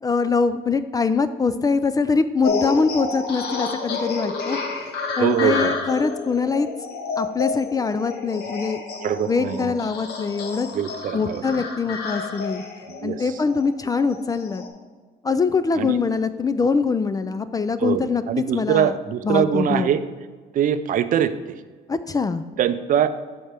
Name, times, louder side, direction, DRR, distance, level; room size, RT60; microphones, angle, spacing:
voice 1, 0.0-4.6 5.2-6.7 7.2-8.8 9.3-10.7 11.1-12.6 13.0-14.6 15.2-19.0 19.2-19.9 21.9-22.4, left 4 dB, 20° left, 12 dB, 0.3 m, -23 dB
sound 1, 2.4-14.7, left 4 dB, 75° left, 1.2 m, -30 dB
voice 2, 5.2-5.7 9.0-9.7 10.7-11.4 12.9-13.2 15.8-16.0 17.8-18.0 18.3-20.0 20.5-21.5 22.6-23.1, right 9 dB, 55° right, 12 dB, 0.5 m, -22 dB
12.5 x 4.4 x 3.4 m, 1.4 s
cardioid pair, 110°, 17 cm